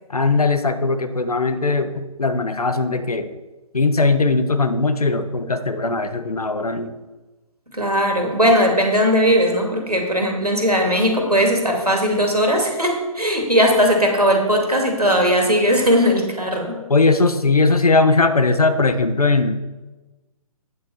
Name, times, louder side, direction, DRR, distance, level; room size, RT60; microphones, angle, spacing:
voice 1, 0.1-3.3 3.7-6.9 16.9-19.5, left 3 dB, 75° left, 10 dB, 0.9 m, -19 dB
voice 2, 7.7-16.8, equal, 90° right, 2 dB, 2.2 m, -18 dB
8.9 x 7.4 x 4.3 m, 1.2 s
figure-of-eight pair, 135°, 19 cm